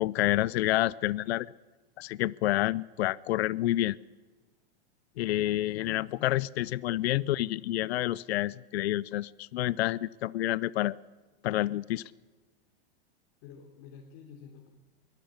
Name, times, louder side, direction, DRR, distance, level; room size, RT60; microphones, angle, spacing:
voice 1, 0.0-1.5 2.0-4.0 5.2-11.0 11.4-12.0, left 15 dB, 75° left, 22 dB, 0.6 m, -28 dB
voice 2, 5.1-7.4 13.4-14.7, left 7 dB, 55° left, 1 dB, 3.5 m, -50 dB
22.5 x 12.5 x 9.7 m, 1.3 s
hypercardioid pair, 120°, 32 cm